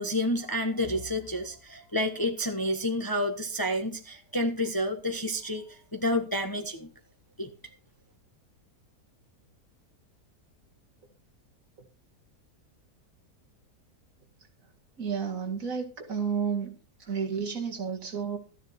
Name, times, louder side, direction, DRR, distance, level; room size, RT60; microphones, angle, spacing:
voice 1, 0.0-6.9 7.4-7.5, left 1 dB, 15° left, 5 dB, 1.2 m, -29 dB
voice 2, 15.0-16.7 17.1-18.4, right 6 dB, 55° right, 2 dB, 2.5 m, -31 dB
13.5 x 10.0 x 4.4 m, 0.35 s
omnidirectional pair, 1.7 m